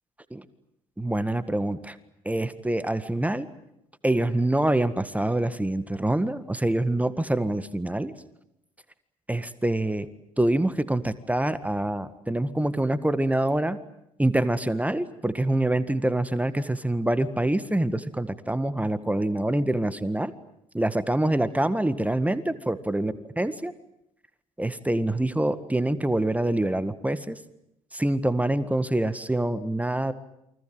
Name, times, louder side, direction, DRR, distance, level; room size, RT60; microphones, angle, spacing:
voice 1, 1.0-2.0 2.2-3.5 4.0-8.1 9.3-10.1 10.4-13.8 14.2-20.3 20.7-23.7 24.6-27.4 27.9-30.1, right 1 dB, 10° right, 13 dB, 1.8 m, -25 dB
29.0 x 24.5 x 7.9 m, 0.83 s
figure-of-eight pair, 55°, 18 cm